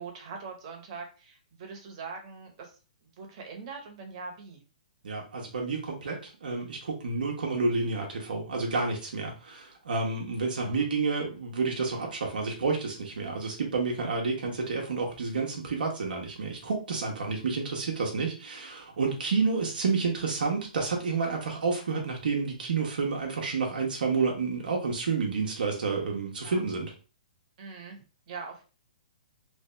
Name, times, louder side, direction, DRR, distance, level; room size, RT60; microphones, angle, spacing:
voice 1, 0.0-2.8 3.2-4.6 10.6-10.9 26.4-26.6 27.6-28.6, right 5 dB, 40° right, 2 dB, 1.3 m, -42 dB
voice 2, 5.0-26.9, right 4 dB, 80° right, 0 dB, 1.2 m, -30 dB
3.3 x 2.7 x 3.3 m, 0.35 s
hypercardioid pair, 155°, 5 cm